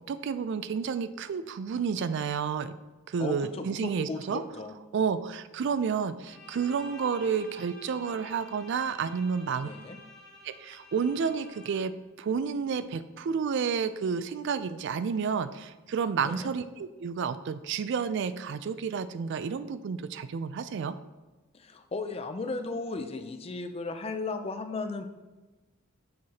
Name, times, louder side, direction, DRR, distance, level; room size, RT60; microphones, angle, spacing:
voice 1, 0.1-2.7 3.1-4.4 4.9-9.7 10.4-11.9 12.2-20.9, right 6 dB, 60° right, 13 dB, 0.3 m, -30 dB
voice 2, 3.2-4.8 9.6-10.0 16.2-16.5 21.5-25.0, left 3 dB, 30° left, 7 dB, 0.4 m, -36 dB
Bowed string instrument, 6.2-12.0, left 1 dB, ahead, 1.4 m, -50 dB
7.7 x 5.7 x 2.8 m, 1.2 s
head